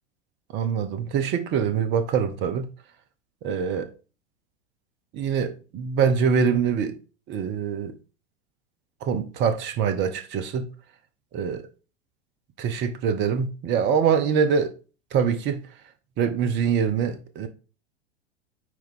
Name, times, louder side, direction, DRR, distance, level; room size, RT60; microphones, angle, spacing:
voice 1, 0.5-2.7 3.4-3.9 5.1-7.0 7.3-7.9 9.0-10.7 11.3-11.7 12.6-14.8 15.1-15.6 16.2-17.5, right 7 dB, 35° right, 0.9 m, -24 dB
9.5 x 3.5 x 3.7 m
figure-of-eight pair, 90°, 31 cm